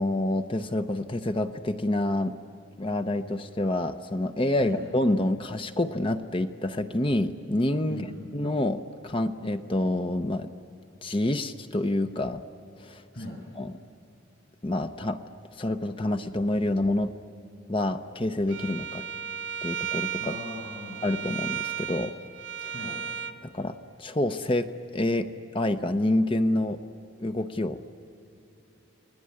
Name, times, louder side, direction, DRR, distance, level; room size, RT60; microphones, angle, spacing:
voice 1, 0.0-2.3 2.8-8.0 8.3-10.5 11.0-12.4 12.8-13.0 13.6-13.7 14.6-15.2 15.6-17.1 17.7-19.0 19.6-20.3 21.0-22.1 22.6-22.7 23.5-25.3 25.5-26.8 27.2-27.8, left 1 dB, 25° left, 8 dB, 0.7 m, -27 dB
voice 2, 7.9-8.4 13.1-13.4 20.2-21.0 22.7-23.0, left 1 dB, 65° left, -2 dB, 7.6 m, -39 dB
Bowed string instrument, 18.5-23.4, right 8 dB, 75° right, 1.1 m, -34 dB
29.5 x 20.0 x 9.8 m, 2.8 s
head